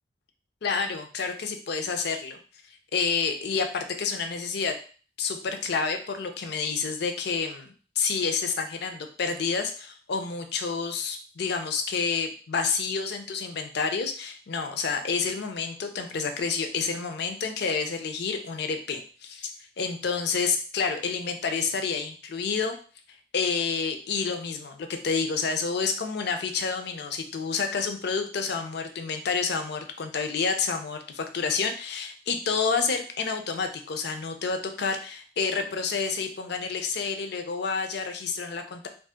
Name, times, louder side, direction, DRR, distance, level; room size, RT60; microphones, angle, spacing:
voice 1, 0.6-2.4 2.9-4.7 5.2-19.5 19.8-22.8 23.3-38.9, left 5 dB, 65° left, 6 dB, 0.5 m, -29 dB
2.7 x 2.4 x 3.5 m, 0.40 s
head